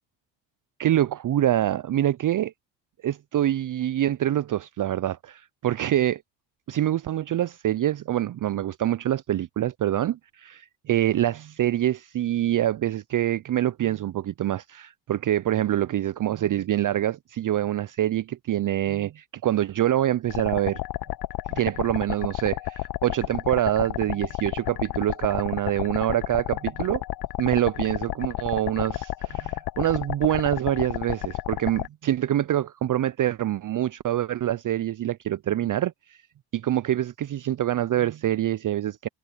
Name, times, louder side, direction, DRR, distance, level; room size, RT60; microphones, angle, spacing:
voice 1, 0.8-2.5 3.0-6.2 6.7-20.8 21.5-27.0 27.4-36.2 36.5-39.1, right 12 dB, 40° right, 0.8 m, -25 dB
sound 1, 20.3-31.9, left 15 dB, 50° left, 0.8 m, -31 dB
hypercardioid pair, 55°, 47 cm